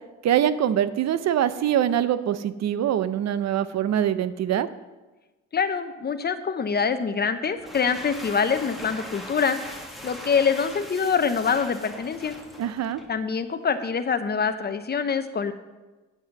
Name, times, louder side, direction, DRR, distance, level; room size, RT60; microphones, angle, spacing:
voice 1, 0.2-4.7 12.6-13.0, right 10 dB, 60° right, 14 dB, 0.7 m, -24 dB
voice 2, 5.5-9.6 10.0-12.3 13.1-15.5, left 6 dB, 35° left, 9 dB, 0.9 m, -25 dB
sound 1, 7.5-13.2, equal, ahead, 1.7 m, -41 dB
8.3 x 7.2 x 6.7 m, 1.2 s
cardioid pair, 90°, 30 cm